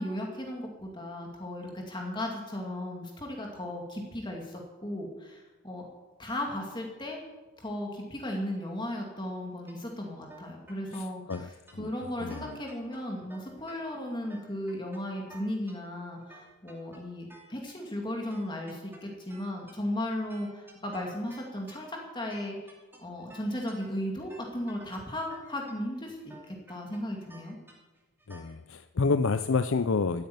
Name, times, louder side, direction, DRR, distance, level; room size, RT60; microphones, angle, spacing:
voice 1, 0.0-5.9 6.2-7.2 7.6-22.7 23.0-27.6, left 1 dB, 20° left, 0 dB, 2.4 m, -36 dB
sound 1, 9.7-9.8 10.3-11.0 11.3-11.7 12.3-13.0 13.3-13.7 14.3-15.0 15.3-15.7 16.2-17.7 18.2-28.5, right 1 dB, 10° right, 2.7 m, -52 dB
voice 2, 10.9-11.5 11.8-11.9 12.2-12.5 28.3-30.3, left 4 dB, 65° left, 10 dB, 0.5 m, -28 dB
15.0 x 9.1 x 9.4 m, 1.2 s
head